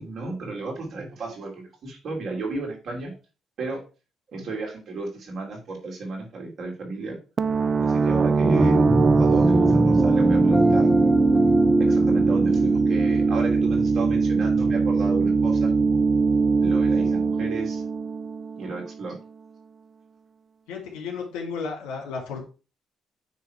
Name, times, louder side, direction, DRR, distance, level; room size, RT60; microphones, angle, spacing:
voice 1, 0.0-3.1 3.6-3.8 4.3-7.2 7.8-8.8 9.2-10.9 11.8-16.0 16.6-17.8 18.6-19.2, right 3 dB, 60° right, 0 dB, 2.9 m, -33 dB
sound 1, 7.4-18.9, right 4 dB, 45° right, 0.4 m, -21 dB
sound 2, 8.4-15.0, equal, ahead, 0.8 m, -24 dB
voice 2, 20.7-22.4, left 5 dB, 85° left, 0 dB, 2.5 m, -33 dB
9.1 x 3.2 x 4.7 m, 0.34 s
supercardioid pair, 70°, 0 cm